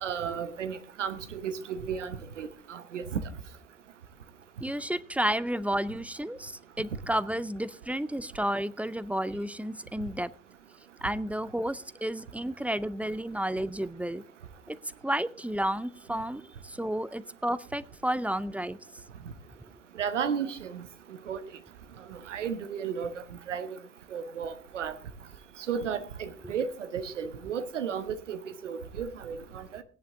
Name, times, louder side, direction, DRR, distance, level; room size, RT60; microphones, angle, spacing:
voice 1, 0.0-3.0 20.0-20.8 21.3-21.4 22.3-23.1 23.5-23.7 24.1-24.9 25.7-26.7 26.9-28.4 28.6-29.8, right 7 dB, 80° right, 12 dB, 1.1 m, -33 dB
voice 2, 4.6-10.3 11.0-14.2 14.7-14.8 15.0-18.8 26.4-26.5, right 1 dB, 5° right, 17 dB, 0.6 m, -31 dB
17.0 x 10.0 x 3.7 m, 0.43 s
figure-of-eight pair, 50°, 36 cm